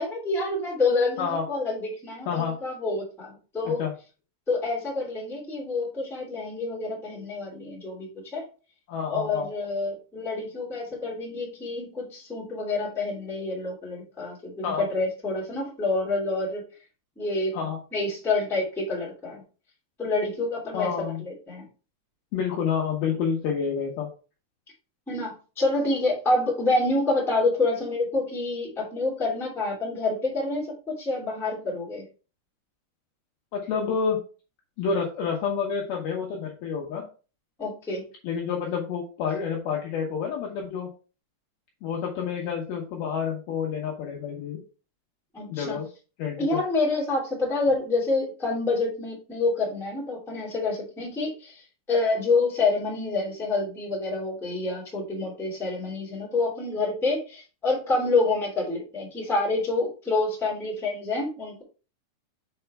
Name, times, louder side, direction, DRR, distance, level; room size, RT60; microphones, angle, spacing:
voice 1, 0.0-3.8 4.5-8.4 9.1-16.6 17.1-17.5 17.9-19.4 20.0-21.6 25.1-32.0 37.6-38.0 45.3-45.8 46.4-51.6 51.9-61.6, left 3 dB, ahead, -4 dB, 1.8 m, -27 dB
voice 2, 8.9-9.5 14.6-14.9 17.5-17.8 20.7-21.2 22.3-24.1 33.5-34.2 34.8-37.1 38.2-40.9 41.8-44.6 45.5-45.9 46.2-46.6, left 6 dB, 70° left, -1 dB, 2.4 m, -29 dB
6.9 x 5.0 x 3.4 m, 0.35 s
omnidirectional pair, 5.5 m